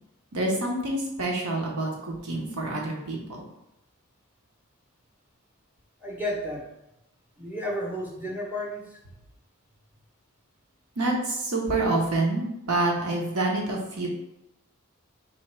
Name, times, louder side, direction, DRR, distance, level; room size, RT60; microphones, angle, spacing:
voice 1, 0.3-3.5 11.0-14.1, right 2 dB, 85° right, -1 dB, 1.1 m, -27 dB
voice 2, 6.0-6.7 7.4-9.0, equal, 10° right, -1 dB, 0.7 m, -32 dB
4.3 x 3.4 x 3.3 m, 0.88 s
head